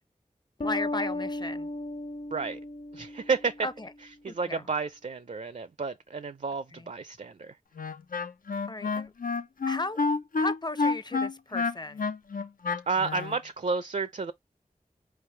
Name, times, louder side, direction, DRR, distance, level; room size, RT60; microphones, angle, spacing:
sound 1, 0.6-3.9, left 1 dB, 55° left, 1.3 m, -35 dB
voice 1, 0.6-1.7 3.6-3.9 4.3-4.6 6.7-6.9 8.7-9.1 9.7-10.0 10.4-12.0, left 2 dB, 30° left, 0.6 m, -35 dB
voice 2, 2.9-3.7 4.2-7.6 12.9-14.3, right 4 dB, 60° right, 0.4 m, -31 dB
Wind instrument woodwind instrument, 7.8-13.4, left 4 dB, 85° left, 0.6 m, -29 dB
4.8 x 3.3 x 3.2 m
wide cardioid pair, 60°, 14 cm